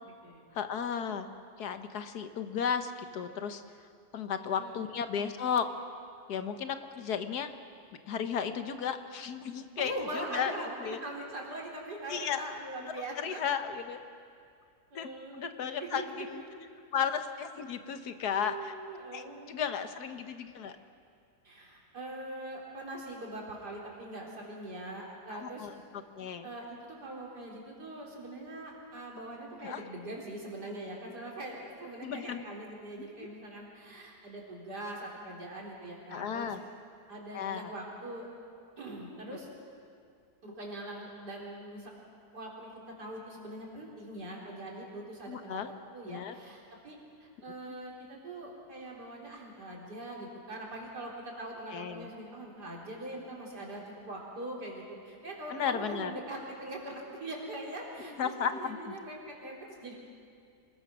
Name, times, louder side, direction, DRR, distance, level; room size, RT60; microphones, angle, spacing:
voice 1, 0.5-1.3 1.6-3.6 4.1-5.7 6.3-7.5 8.1-10.5 10.8-11.0 12.1-12.5 13.2-14.0 14.9-15.1 15.4-16.4 16.9-18.7 19.1-20.8 25.3-25.7 26.2-26.5 29.6-29.8 32.0-32.4 33.2-33.3 36.1-36.6 37.3-37.7 45.3-45.7 46.1-46.3 51.7-52.1 55.5-56.1 58.0-58.9, left 7 dB, 75° left, 9 dB, 1.6 m, -34 dB
voice 2, 9.8-13.4 14.9-16.3 18.4-19.8 21.4-25.7 26.4-36.5 37.1-38.3 38.8-39.5 40.4-41.9 42.3-42.7 43.0-59.9, right 1 dB, 85° right, -2 dB, 4.4 m, -42 dB
25.5 x 20.5 x 6.2 m, 2.3 s
omnidirectional pair, 1.7 m